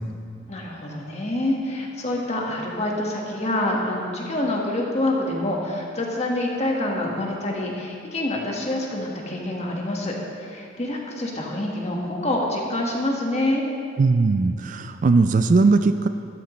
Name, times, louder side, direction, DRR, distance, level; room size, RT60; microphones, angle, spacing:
voice 1, 0.5-13.6, left 1 dB, 35° left, -1 dB, 1.6 m, -26 dB
voice 2, 14.0-16.1, right 3 dB, 40° right, 9 dB, 0.3 m, -19 dB
13.0 x 13.0 x 3.2 m, 2.4 s
head